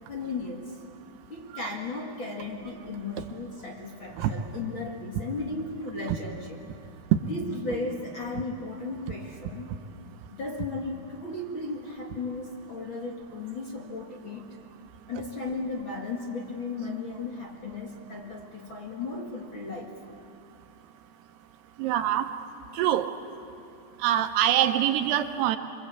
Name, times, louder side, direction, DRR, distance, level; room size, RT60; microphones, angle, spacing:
voice 1, 0.1-0.7 1.3-6.6 7.3-9.7 10.3-14.6 15.1-20.0, left 3 dB, 40° left, 0 dB, 1.9 m, -35 dB
voice 2, 21.8-22.3 22.8-23.1 24.0-25.6, right 11 dB, 85° right, 8 dB, 3.1 m, -24 dB
27.0 x 24.5 x 8.3 m, 2.6 s
omnidirectional pair, 4.6 m